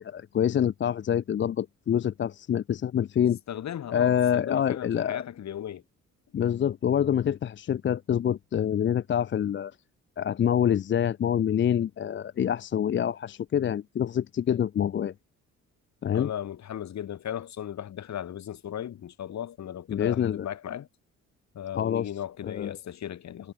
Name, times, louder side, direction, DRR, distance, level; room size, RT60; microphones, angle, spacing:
voice 1, 0.0-3.4 3.9-5.2 6.3-9.7 10.2-15.1 16.0-16.3 19.9-20.4 21.7-22.1 22.4-22.8, left 9 dB, 40° left, 0.5 m, -26 dB
voice 2, 3.5-5.8 16.1-20.9 21.5-23.5, left 10 dB, 65° left, 3.7 m, -36 dB
cardioid pair, 90°, 30 cm